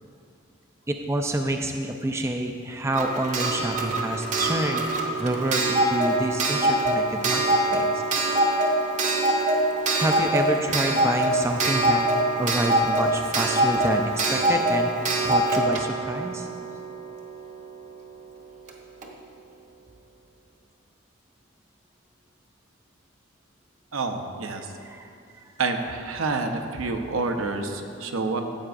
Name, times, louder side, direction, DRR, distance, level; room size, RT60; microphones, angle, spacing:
voice 1, 0.9-4.9 5.2-7.4 7.7-8.0 9.9-12.1 12.4-14.9 15.2-16.5 24.8-25.5, right 1 dB, 15° right, 4 dB, 0.3 m, -28 dB
Clock, 2.9-17.5 18.7-18.8 19.0-19.1, right 1 dB, 35° right, 0.8 m, -24 dB
voice 2, 23.9-24.7 25.6-28.4, right 3 dB, 85° right, 5 dB, 0.7 m, -28 dB
14.0 x 8.0 x 2.5 m, 2.4 s
head